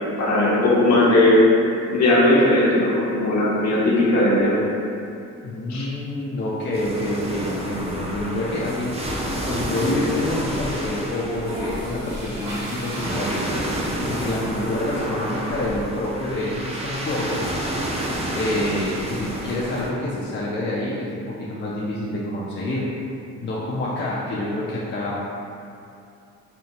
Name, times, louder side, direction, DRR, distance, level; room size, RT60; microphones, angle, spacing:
voice 1, 0.2-1.4 1.9-4.5 5.7-5.9, left 1 dB, 60° left, -6 dB, 1.0 m, -18 dB
voice 2, 5.4-9.0 9.4-13.4 14.0-17.5 18.3-22.9 23.4-25.3, left 1 dB, 35° left, -6 dB, 0.5 m, -27 dB
sound 1, 6.7-19.9, right 1 dB, 20° right, 0.5 m, -29 dB
sound 2, 11.3-14.9, equal, 60° right, 1.1 m, -36 dB
4.3 x 2.1 x 2.8 m, 2.6 s
cardioid pair, 90°, 30 cm